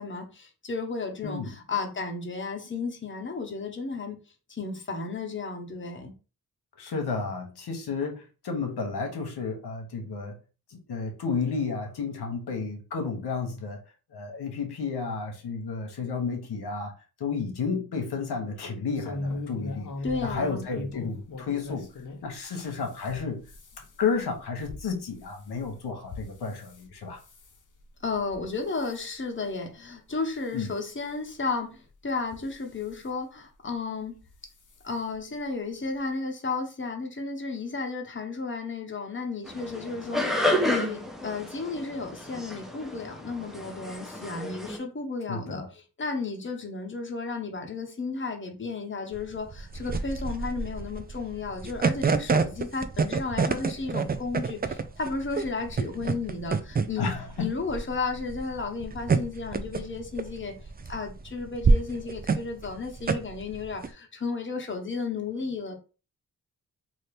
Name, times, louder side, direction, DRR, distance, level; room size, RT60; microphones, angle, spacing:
voice 1, 0.0-4.2 4.5-6.1 20.0-20.7 28.0-34.2 34.8-57.1 57.4-60.5 60.9-65.7, left 4 dB, 30° left, 0.9 m, -33 dB
voice 2, 6.8-10.3 10.7-13.8 14.1-16.9 17.2-19.9 20.2-21.9 22.2-23.4 24.0-27.2 30.5-30.7 45.3-45.7 57.0-57.5, left 5 dB, 85° left, 0.8 m, -32 dB
sound 1, 18.9-22.2 22.7-26.8 27.2-27.6 28.1-28.4 28.7-29.0 29.6-29.7 30.1-30.2 31.3-31.4 32.2-33.0 34.2-34.3 34.7-34.8 35.1-35.2, left 2 dB, 55° left, 0.7 m, -39 dB
sound 2, 39.4-44.8, left 1 dB, ahead, 0.8 m, -31 dB
sound 3, 49.1-63.9, right 4 dB, 25° right, 0.4 m, -27 dB
2.8 x 2.6 x 3.3 m
cardioid pair, 40°, 39 cm